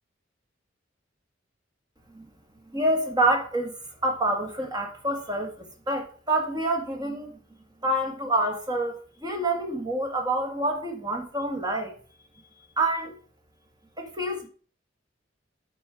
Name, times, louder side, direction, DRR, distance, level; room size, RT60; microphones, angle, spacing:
voice 1, 2.7-3.7 4.0-7.4 7.8-12.0 12.8-13.1 14.0-14.5, right 1 dB, 20° right, 1.6 m, -27 dB
8.7 x 5.1 x 4.7 m
head